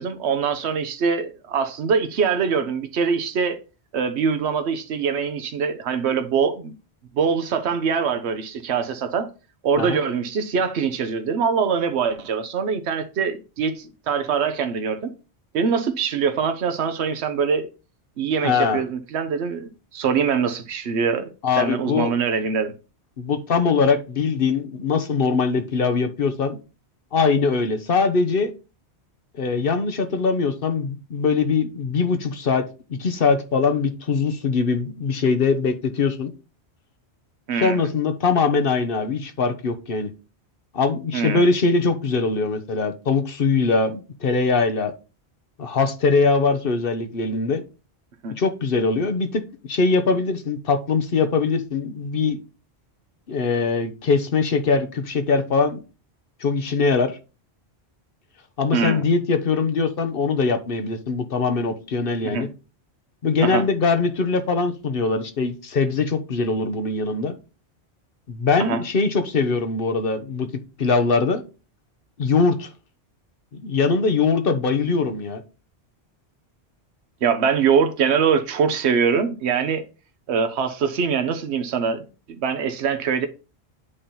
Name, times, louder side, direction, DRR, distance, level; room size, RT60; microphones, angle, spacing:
voice 1, 0.0-3.6 3.9-6.7 7.1-9.3 9.6-15.1 15.5-17.7 18.2-22.7 37.5-37.9 41.1-41.5 48.2-48.3 58.7-59.0 62.2-62.5 63.4-63.6 68.6-68.8 77.2-79.8 80.3-82.0 82.4-83.3, right 6 dB, 80° right, 1.1 m, -23 dB
voice 2, 18.4-18.8 21.4-22.1 23.2-26.6 27.1-28.5 29.4-36.3 37.5-40.1 40.7-44.9 45.6-47.6 48.4-49.4 49.7-52.4 53.3-55.8 56.4-57.2 58.6-62.5 63.2-67.3 68.3-70.5 70.8-71.4 72.2-72.7 73.6-75.4, left 4 dB, 60° left, 1.0 m, -22 dB
8.4 x 2.9 x 5.4 m
omnidirectional pair, 1.1 m